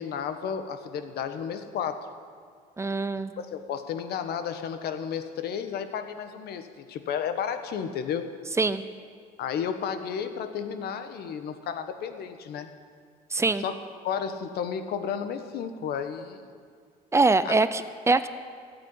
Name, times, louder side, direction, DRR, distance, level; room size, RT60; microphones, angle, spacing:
voice 1, 0.0-2.0 3.4-8.3 9.4-12.7 13.6-13.8 14.0-16.5 17.4-17.6, left 7 dB, 70° left, 9 dB, 1.3 m, -32 dB
voice 2, 2.8-3.3 8.6-8.8 13.3-13.6 17.1-18.3, right 3 dB, 15° right, 12 dB, 0.7 m, -23 dB
14.5 x 8.6 x 9.7 m, 2.1 s
cardioid pair, 110°, 17 cm